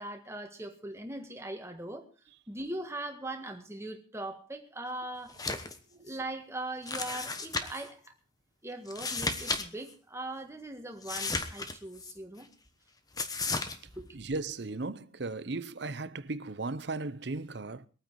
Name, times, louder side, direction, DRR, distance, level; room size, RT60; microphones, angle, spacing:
voice 1, 0.0-2.1 2.5-5.4 6.0-8.1 8.6-12.5 14.0-14.2, right 1 dB, 15° right, 1.7 m, -40 dB
sound 1, 5.3-5.8 6.1-6.2 6.9-7.9 8.9-9.6 9.9-10.0 11.0-12.1 13.2-13.8, left 3 dB, 20° left, 1.1 m, -34 dB
voice 2, 14.1-17.9, right 3 dB, 55° right, 0.8 m, -36 dB
22.0 x 9.3 x 4.7 m
head